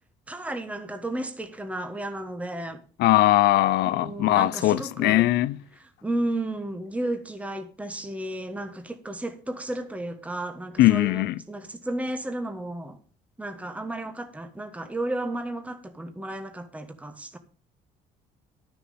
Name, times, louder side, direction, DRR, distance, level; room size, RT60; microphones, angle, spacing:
voice 1, 0.3-2.8 3.8-5.3 5.8-13.0 13.4-17.4, right 1 dB, 10° right, 1.3 m, -33 dB
voice 2, 3.0-5.6 10.8-11.3, left 16 dB, 80° left, 0.6 m, -20 dB
11.5 x 7.1 x 5.3 m
cardioid pair, 110°, 17 cm